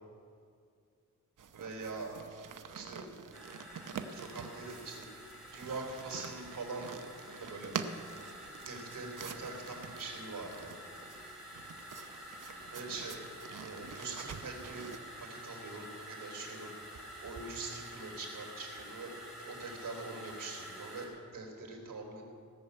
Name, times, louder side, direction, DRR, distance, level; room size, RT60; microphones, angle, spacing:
sound 1, 1.4-15.0, right 6 dB, 75° right, 0.8 m, -46 dB
voice 1, 1.5-2.1 2.7-3.1 4.0-5.0 5.5-6.9 7.4-7.7 8.4-10.7 12.6-13.2 13.5-14.9 15.2-19.1 19.5-22.2, right 3 dB, 90° right, -1 dB, 3.2 m, -43 dB
sound 2, 3.3-21.1, equal, ahead, 3.8 m, -49 dB
17.5 x 7.1 x 8.2 m, 2.3 s
wide cardioid pair, 115°, 32 cm